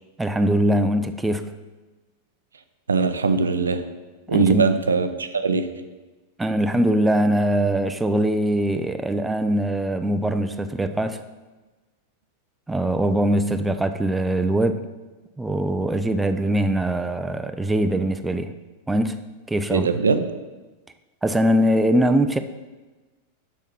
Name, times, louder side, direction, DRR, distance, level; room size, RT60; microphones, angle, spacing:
voice 1, 0.2-1.5 4.3-4.6 6.4-11.2 12.7-14.8 15.4-18.5 18.9-19.1 19.5-19.9 21.2-22.4, right 1 dB, 5° right, 8 dB, 0.5 m, -22 dB
voice 2, 2.9-3.9 4.3-5.7 19.7-20.3, right 4 dB, 75° right, 9 dB, 0.6 m, -21 dB
7.0 x 5.6 x 5.7 m, 1.2 s
figure-of-eight pair, 90°, 0 cm